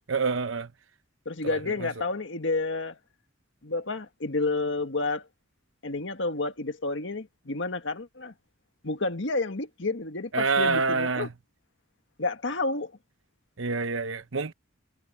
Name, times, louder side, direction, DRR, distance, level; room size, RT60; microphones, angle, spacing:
voice 1, 0.1-0.7 1.4-1.9 10.3-11.3 13.6-14.5, right 4 dB, 70° right, 0.9 m, -27 dB
voice 2, 1.3-3.0 3.6-5.3 5.8-8.3 8.8-11.3 12.2-12.9, left 3 dB, 65° left, 1.8 m, -30 dB
head